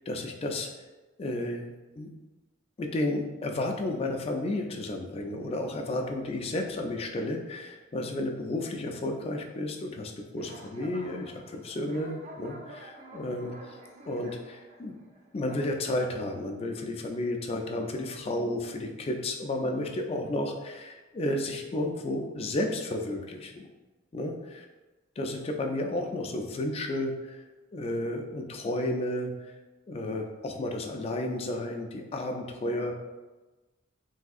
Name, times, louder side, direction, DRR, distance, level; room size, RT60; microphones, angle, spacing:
voice 1, 0.1-0.7 1.2-2.1 2.8-13.5 14.1-15.0 15.3-23.7 24.1-24.3 25.2-27.4 27.7-29.3 29.9-32.9, left 1 dB, 30° left, 3 dB, 0.3 m, -32 dB
sound 1, 10.4-15.6, right 1 dB, 40° right, 0.4 m, -49 dB
3.4 x 2.7 x 2.4 m, 1.2 s
head